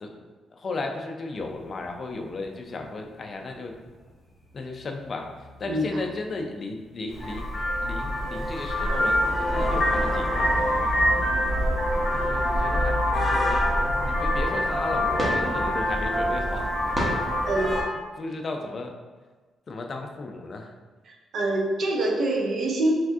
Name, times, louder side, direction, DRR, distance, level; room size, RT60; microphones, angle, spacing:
voice 1, 0.0-3.8 4.5-7.5 7.8-10.8 11.7-13.7 14.0-16.7 17.9-19.0 19.7-20.7, left 3 dB, 45° left, 3 dB, 0.4 m, -35 dB
sound 1, 1.3-17.1, equal, 15° right, 0.8 m, -41 dB
Vehicle horn car horn honking, 7.1-17.8, equal, 20° left, 0.7 m, -25 dB
voice 2, 17.5-17.8 21.1-22.9, right 1 dB, 60° right, 0 dB, 0.6 m, -25 dB
3.3 x 2.5 x 2.4 m, 1.4 s
cardioid pair, 105°, 0 cm